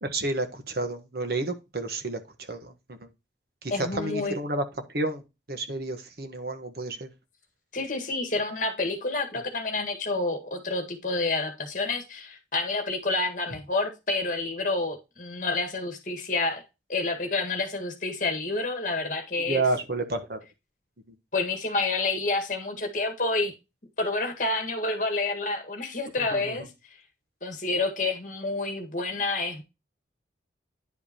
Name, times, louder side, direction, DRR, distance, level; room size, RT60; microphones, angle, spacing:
voice 1, 0.0-3.1 3.6-4.6 4.9-5.2 5.5-7.1 19.5-20.4 26.2-26.6, right 2 dB, 55° right, 1.3 m, -30 dB
voice 2, 3.7-4.4 7.7-16.6 16.9-19.6 21.3-23.5 24.0-26.7 27.4-29.6, left 3 dB, 45° left, 1.7 m, -29 dB
10.5 x 5.2 x 2.9 m
head